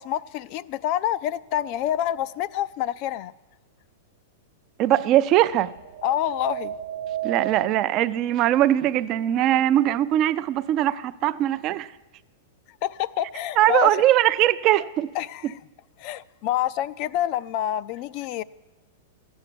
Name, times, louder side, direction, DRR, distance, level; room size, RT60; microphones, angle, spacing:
voice 1, 0.0-3.3 6.0-6.7 12.8-13.9 15.1-15.6 16.0-18.4, left 12 dB, 40° left, 0.4 m, -27 dB
sound 1, 1.5-2.2 5.5-7.7, right 11 dB, 70° right, 0.8 m, -33 dB
voice 2, 4.8-5.7 7.2-11.9 13.6-15.1, right 13 dB, 35° right, 0.5 m, -21 dB
14.5 x 8.0 x 9.2 m
supercardioid pair, 150°, 0 cm